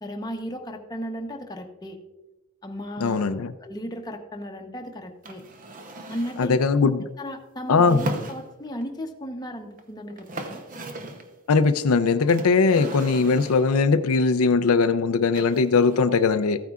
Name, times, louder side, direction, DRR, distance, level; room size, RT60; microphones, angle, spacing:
voice 1, 0.0-2.0 2.6-3.4 3.6-5.4 6.1-6.7 7.2-10.6, equal, 20° left, 4 dB, 0.9 m, -35 dB
voice 2, 3.0-3.5 6.4-7.0 7.7-8.0 11.5-16.6, left 4 dB, 85° left, 10 dB, 0.5 m, -20 dB
sound 1, 5.2-6.5 7.7-8.8 9.8-9.9 10.1-11.3 12.3-13.8 15.3-16.0, right 1 dB, 40° right, 0.8 m, -36 dB
14.0 x 9.2 x 2.4 m, 1.1 s
head